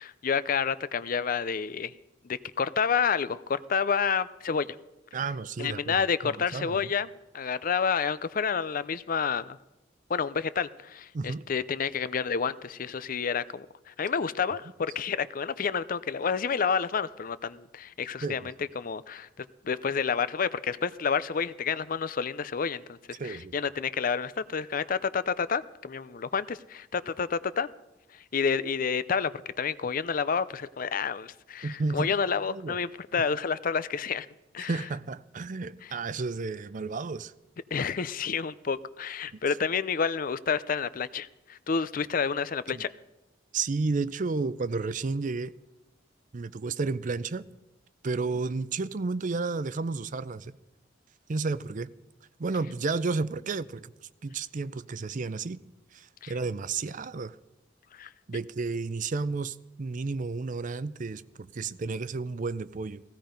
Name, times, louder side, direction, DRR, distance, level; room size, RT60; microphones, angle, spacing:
voice 1, 0.0-1.9 2.2-4.8 5.6-9.6 10.1-27.7 28.1-34.3 34.5-34.7 35.8-35.9 37.7-42.9 56.2-56.3 57.9-58.1, left 6 dB, 45° left, 0.5 m, -29 dB
voice 2, 5.1-6.0 6.2-6.8 11.1-11.4 18.2-18.5 23.2-23.5 31.6-32.1 32.5-32.8 34.6-37.3 39.3-39.4 42.7-42.8 43.5-45.5 46.3-47.5 48.0-50.5 51.3-51.9 52.4-53.9 54.2-55.6 55.9-57.4 58.3-63.0, right 4 dB, 40° right, 0.5 m, -32 dB
16.5 x 16.0 x 5.1 m
head